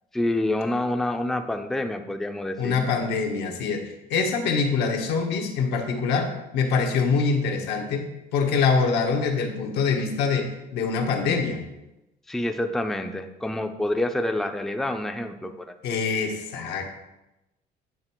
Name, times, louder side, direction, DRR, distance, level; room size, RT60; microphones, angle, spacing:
voice 1, 0.1-2.9 12.3-15.7, left 1 dB, ahead, 6 dB, 0.4 m, -27 dB
voice 2, 2.6-8.1 8.3-11.6 15.8-17.0, left 5 dB, 80° left, 2 dB, 1.1 m, -24 dB
9.0 x 3.4 x 4.4 m, 0.96 s
cardioid pair, 110°, 17 cm